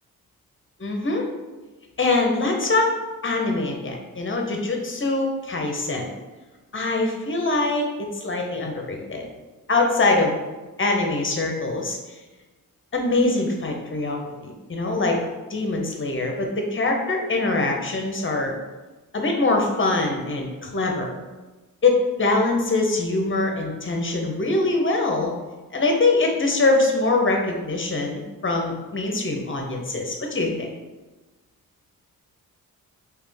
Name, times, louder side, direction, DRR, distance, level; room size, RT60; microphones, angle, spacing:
voice 1, 0.8-1.3 2.0-2.9 3.2-6.1 6.7-9.3 9.7-10.4 10.8-12.2 12.9-15.2 15.5-18.5 19.1-21.1 21.8-25.3 25.7-30.7, left 2 dB, 35° left, 1 dB, 0.8 m, -23 dB
3.6 x 3.0 x 3.4 m, 1.2 s
cardioid pair, 65°, 36 cm